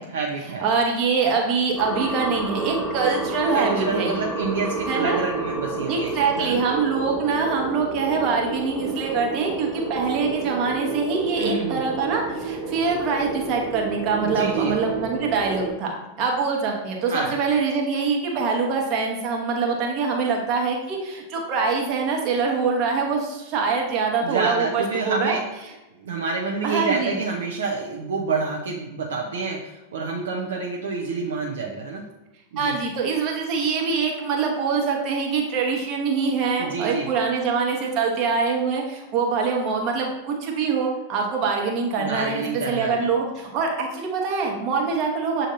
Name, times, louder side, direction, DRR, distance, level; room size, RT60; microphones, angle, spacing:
voice 1, 0.1-0.6 3.5-6.6 11.4-11.8 14.2-14.7 17.1-17.3 24.2-25.4 25.9-32.0 32.5-32.8 36.6-37.1 42.0-43.0, right 4 dB, 65° right, -1 dB, 0.5 m, -28 dB
voice 2, 0.6-4.3 4.9-5.2 5.9-25.4 26.6-27.2 32.6-45.5, right 5 dB, 40° right, 0 dB, 0.9 m, -24 dB
sound 1, 1.8-15.7, right 3 dB, 5° left, 1.0 m, -30 dB
7.1 x 2.5 x 2.6 m, 1.0 s
figure-of-eight pair, 90°, 0 cm